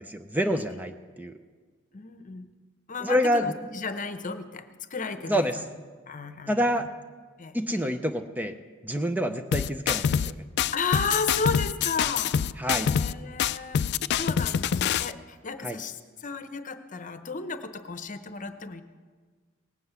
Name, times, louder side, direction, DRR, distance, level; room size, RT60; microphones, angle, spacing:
voice 1, 0.0-1.3 3.0-3.5 5.3-5.6 6.5-6.9 7.5-8.5 8.8-10.2 12.6-12.9 15.6-15.8, equal, 10° right, 7 dB, 0.5 m, -27 dB
voice 2, 1.9-2.5 2.9-5.7 6.1-6.8 7.4-7.6 10.7-12.3 12.7-13.8 14.1-18.8, left 4 dB, 40° left, 10 dB, 0.9 m, -33 dB
sound 1, 9.5-10.3 10.6-13.1 13.4-15.1, left 7 dB, 55° left, 0.3 m, -25 dB
18.5 x 7.7 x 8.1 m, 1.5 s
head